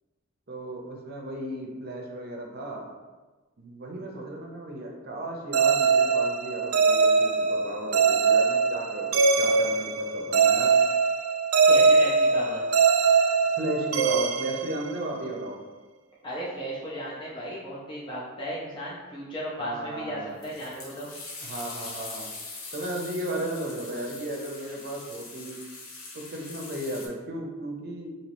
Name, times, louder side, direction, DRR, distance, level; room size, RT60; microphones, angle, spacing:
voice 1, 0.5-2.9 3.6-10.8 13.5-15.6 19.6-20.4 21.4-22.3 22.7-25.6 26.1-28.1, right 1 dB, 50° right, 0 dB, 0.6 m, -35 dB
sound 1, 5.5-15.3, right 5 dB, 85° right, 0.3 m, -22 dB
voice 2, 11.7-12.6 16.2-21.1, equal, 25° left, -6 dB, 0.5 m, -35 dB
sound 2, 20.4-27.1, left 3 dB, 85° left, 0.7 m, -42 dB
3.0 x 2.8 x 3.0 m, 1.2 s
head